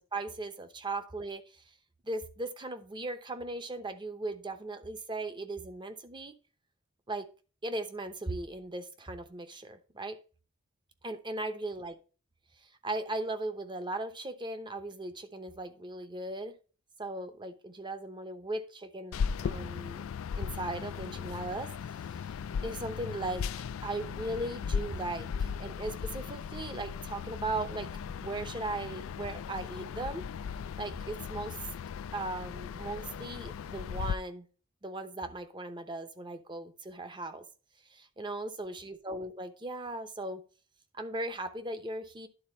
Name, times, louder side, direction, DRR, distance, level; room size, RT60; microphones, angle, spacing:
voice 1, 0.0-1.4 2.0-6.3 7.1-7.3 7.6-10.2 11.0-11.9 12.8-16.5 17.0-20.0 20.4-21.7 22.6-23.5 23.8-30.3 30.8-31.6 32.1-34.5 34.8-37.4 37.9-40.4 40.9-42.3, right 2 dB, 25° right, 0.9 m, -38 dB
sound 1, 19.1-34.1, left 6 dB, 80° left, 0.4 m, -37 dB
11.0 x 4.0 x 4.1 m
head